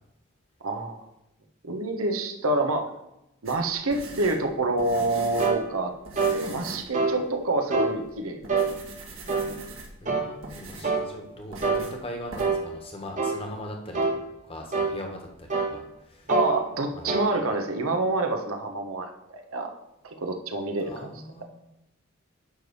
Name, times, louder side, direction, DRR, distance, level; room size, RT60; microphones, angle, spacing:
voice 1, 0.6-1.0 1.6-2.9 3.4-5.9 6.3-8.4 16.3-19.7 20.0-21.1, right 2 dB, 85° right, 4 dB, 1.2 m, -27 dB
sound 1, 3.5-5.6 6.1-6.9 7.3-7.4 8.0-8.1 8.4-10.0 10.4-11.0 11.5-12.0 12.3-12.4, right 2 dB, 70° right, 1.9 m, -41 dB
sound 2, 5.4-5.6 6.2-6.4 6.9-7.2 7.7-7.9 8.5-8.7 9.3-9.5 10.1-10.3 10.8-11.1 11.6-11.9 12.4-12.6 13.2-13.4 13.9-14.2 14.7-14.9 15.5-15.7 16.3-16.5 17.1-17.3, right 4 dB, 35° right, 1.1 m, -25 dB
voice 2, 10.0-14.1 14.5-16.3 16.9-17.2 20.8-21.4, left 1 dB, 25° left, 2 dB, 1.5 m, -40 dB
10.0 x 3.5 x 7.0 m, 0.88 s
head